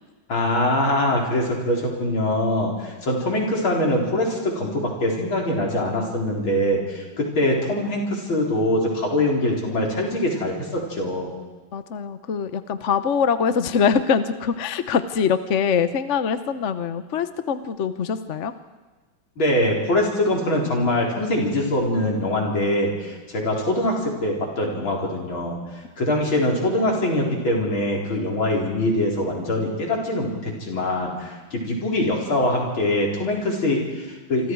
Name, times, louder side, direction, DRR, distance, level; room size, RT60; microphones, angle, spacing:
voice 1, 0.3-11.3 19.4-25.6 26.0-34.5, left 1 dB, 75° left, -1 dB, 5.0 m, -23 dB
voice 2, 11.7-18.5, left 6 dB, 45° left, 11 dB, 1.0 m, -23 dB
27.5 x 25.0 x 4.8 m, 1.3 s
omnidirectional pair, 2.2 m